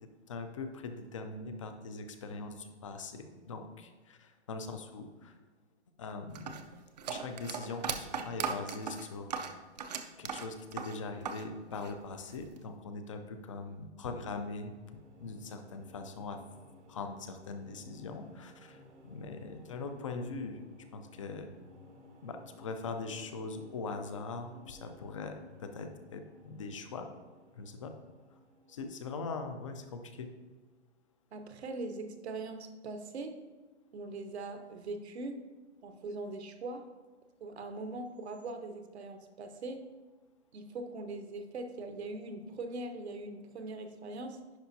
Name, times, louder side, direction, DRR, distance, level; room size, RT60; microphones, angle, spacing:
voice 1, 0.0-5.3 6.0-6.6 7.1-9.3 10.2-14.7 15.2-16.4 16.9-20.6 20.9-21.5 22.2-27.1 27.6-27.9 28.7-30.3, left 4 dB, 30° left, 7 dB, 0.5 m, -41 dB
sound 1, 6.3-11.5 11.7-12.6, right 6 dB, 40° right, 0.5 m, -38 dB
sound 2, 14.2-29.6, equal, 90° right, 1.5 m, -58 dB
voice 2, 31.3-33.4 33.9-35.4 35.8-36.9 37.4-39.9 40.5-44.4, right 2 dB, 70° right, 7 dB, 0.9 m, -41 dB
10.5 x 5.0 x 2.7 m, 1.3 s
hypercardioid pair, 160°, 34 cm